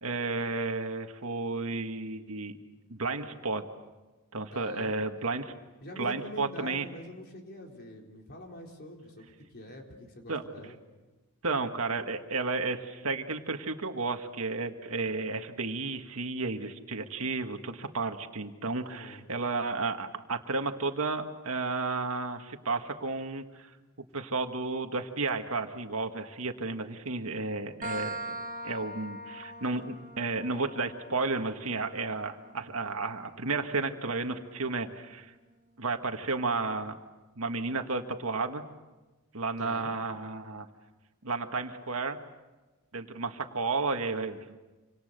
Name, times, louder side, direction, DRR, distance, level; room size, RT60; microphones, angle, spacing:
voice 1, 0.0-2.6 2.9-3.6 4.3-5.5 6.0-6.9 10.3-10.4 11.4-23.7 24.1-28.4 28.6-35.3 35.8-37.0 37.3-38.6 39.3-40.7 41.2-42.2 42.9-44.6, right 3 dB, 70° right, 5 dB, 1.8 m, -32 dB
voice 2, 4.5-4.9 5.8-10.8 18.8-19.2 39.6-39.9, left 1 dB, 45° left, 1 dB, 4.1 m, -45 dB
sound 1, 27.8-35.2, right 2 dB, 40° right, 1.9 m, -43 dB
27.5 x 26.5 x 6.7 m, 1.2 s
head